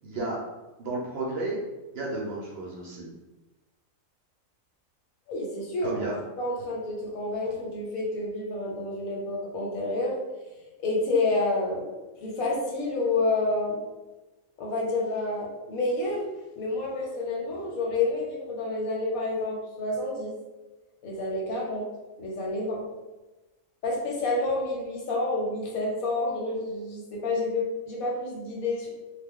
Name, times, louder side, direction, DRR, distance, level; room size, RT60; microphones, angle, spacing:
voice 1, 0.0-0.4 0.8-1.6 1.9-3.1 5.8-6.2, right 2 dB, 60° right, -3 dB, 0.7 m, -32 dB
voice 2, 5.3-6.0 6.4-10.2 10.8-11.9 12.2-13.8 14.6-16.2 16.6-20.3 21.0-21.8 22.2-22.8 23.8-28.9, left 2 dB, 90° left, -2 dB, 1.2 m, -29 dB
2.4 x 2.2 x 3.5 m, 1.1 s
omnidirectional pair, 1.4 m